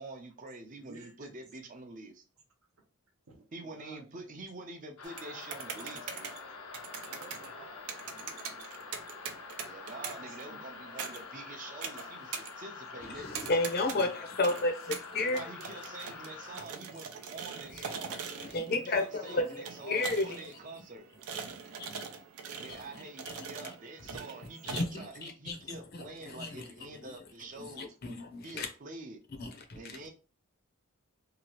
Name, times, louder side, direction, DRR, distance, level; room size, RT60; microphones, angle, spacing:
voice 1, 0.0-2.2 3.5-6.3 9.6-13.5 15.2-18.2 18.7-21.1 22.6-27.9 28.4-29.2 29.7-30.1, right 2 dB, 40° right, 0.5 m, -46 dB
voice 2, 0.7-1.4 3.3-4.4 6.9-8.9 10.1-10.9 12.0-12.2 14.5-14.6, right 3 dB, 75° right, 0.9 m, -57 dB
sound 1, 5.0-16.6, left 5 dB, 85° left, 0.6 m, -46 dB
sound 2, 5.0-24.8, right 6 dB, 90° right, 0.5 m, -43 dB
voice 3, 13.0-15.7 17.7-20.5 21.8-22.0 22.7-23.7 24.1-24.2 24.6-27.2 27.5-28.7 29.4-30.1, left 2 dB, 45° left, 0.6 m, -34 dB
2.8 x 2.4 x 2.9 m
head